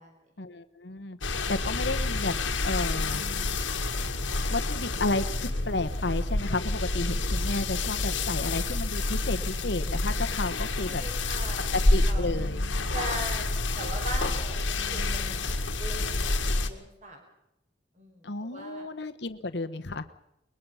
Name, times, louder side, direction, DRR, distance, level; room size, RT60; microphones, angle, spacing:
voice 1, 0.4-2.3 2.6-3.2 4.5-11.0 11.9-12.6 18.2-20.1, left 2 dB, 65° left, 10 dB, 1.1 m, -32 dB
sound 1, 1.2-16.7, left 2 dB, 85° left, 1.8 m, -28 dB
voice 2, 10.4-11.7 12.0-12.3 12.9-13.5 13.7-17.2 17.9-18.9, right 1 dB, 40° right, 2 dB, 4.9 m, -41 dB
22.5 x 21.5 x 5.6 m, 0.81 s
head